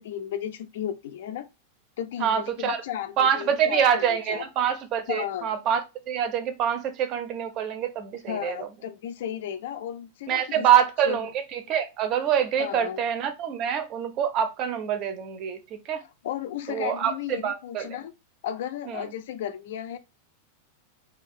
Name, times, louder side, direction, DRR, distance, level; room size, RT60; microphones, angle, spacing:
voice 1, 0.0-1.5 2.0-4.5 5.1-5.5 8.3-10.7 11.0-11.2 12.6-13.0 16.2-18.1 18.4-20.0, left 10 dB, 55° left, 0.3 m, -34 dB
voice 2, 2.2-2.8 3.2-8.7 10.3-16.0 16.7-17.9 18.9-19.1, right 9 dB, 35° right, 0.5 m, -25 dB
2.4 x 2.4 x 3.4 m
figure-of-eight pair, 90°, 0 cm